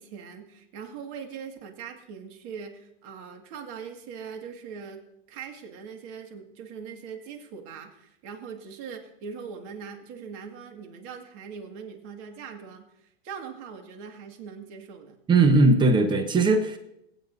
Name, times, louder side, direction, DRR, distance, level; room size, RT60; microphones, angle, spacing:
voice 1, 0.0-5.0 5.3-15.2, right 6 dB, 40° right, 4 dB, 2.0 m, -41 dB
voice 2, 15.3-16.8, right 3 dB, 15° right, 7 dB, 1.0 m, -19 dB
21.0 x 9.2 x 2.7 m, 0.79 s
hypercardioid pair, 140°, 33 cm